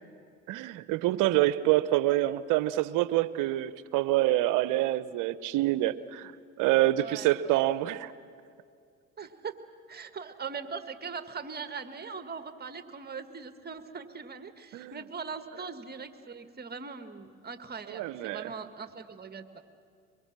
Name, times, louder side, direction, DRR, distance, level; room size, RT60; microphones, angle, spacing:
voice 1, 0.5-6.3 6.6-8.1 14.7-15.0 17.9-18.5, right 15 dB, 65° right, 16 dB, 0.9 m, -26 dB
voice 2, 7.0-7.6 9.2-9.6 9.9-19.5, right 5 dB, 30° right, 9 dB, 1.7 m, -41 dB
23.5 x 22.5 x 7.5 m, 2.3 s
hypercardioid pair, 60°, 34 cm